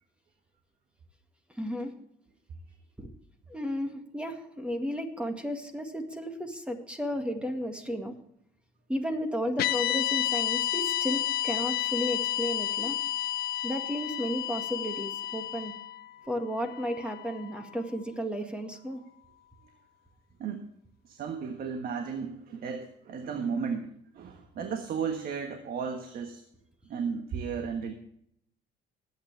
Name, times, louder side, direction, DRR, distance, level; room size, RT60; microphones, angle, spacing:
voice 1, 1.6-1.9 3.0-3.1 3.5-8.1 8.9-13.0 13.6-15.7 16.3-19.0, equal, 5° right, 5 dB, 2.0 m, -33 dB
sound 1, 9.6-17.9, left 13 dB, 65° left, 0.7 m, -31 dB
voice 2, 21.0-26.4 26.9-27.9, right 6 dB, 60° right, 6 dB, 1.5 m, -34 dB
20.0 x 9.0 x 3.4 m, 0.72 s
cardioid pair, 110°, 17 cm